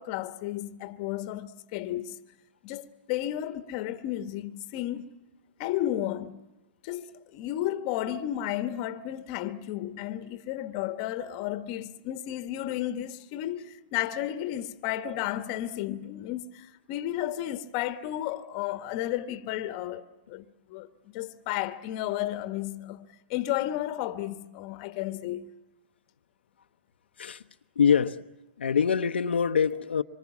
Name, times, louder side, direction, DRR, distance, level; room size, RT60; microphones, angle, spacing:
voice 1, 0.0-2.2 2.6-5.1 5.6-6.4 6.8-20.9 21.1-25.4, left 13 dB, 40° left, 1.1 m, -33 dB
voice 2, 27.8-28.2 28.6-30.0, left 7 dB, 90° left, 0.8 m, -24 dB
26.0 x 24.0 x 7.2 m
hypercardioid pair, 140°, 6 cm